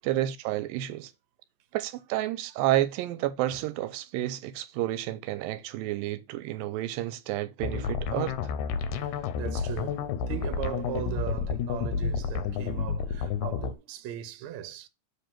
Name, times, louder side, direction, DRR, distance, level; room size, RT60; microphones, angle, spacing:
voice 1, 0.1-1.1 1.7-8.5, right 14 dB, 85° right, 2.3 m, -30 dB
sound 1, 7.6-13.7, left 6 dB, 75° left, 1.8 m, -30 dB
voice 2, 8.7-14.9, right 10 dB, 70° right, 1.8 m, -38 dB
7.1 x 3.5 x 5.7 m
omnidirectional pair, 4.0 m